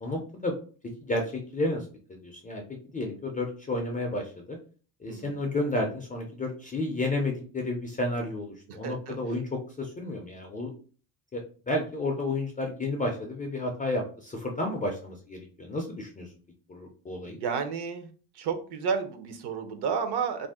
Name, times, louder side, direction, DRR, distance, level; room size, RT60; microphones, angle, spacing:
voice 1, 0.0-0.5 0.8-2.6 2.9-4.6 5.0-10.7 11.3-16.3 16.7-17.4, left 2 dB, 20° left, 1 dB, 0.3 m, -31 dB
voice 2, 5.1-5.4 8.7-9.2 17.2-18.1 18.4-20.5, right 6 dB, 55° right, 8 dB, 0.7 m, -31 dB
2.6 x 2.1 x 3.5 m, 0.41 s
cardioid pair, 105°, 49 cm